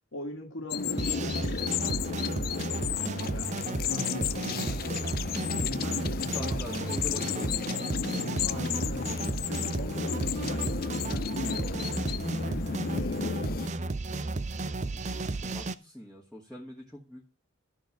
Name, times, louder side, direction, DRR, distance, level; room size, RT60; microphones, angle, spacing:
voice 1, 0.1-2.5 3.0-3.5 3.9-5.3 5.6-7.0 8.4-12.1 12.4-13.3, left 1 dB, 65° left, 0 dB, 1.9 m, -41 dB
sound 1, 0.7-13.7, left 7 dB, 45° left, 0.4 m, -33 dB
sound 2, 1.0-15.7, right 2 dB, 35° right, 0.5 m, -33 dB
voice 2, 6.1-8.1 14.9-17.2, left 1 dB, 5° left, -5 dB, 2.2 m, -44 dB
13.0 x 4.7 x 7.3 m, 0.33 s
head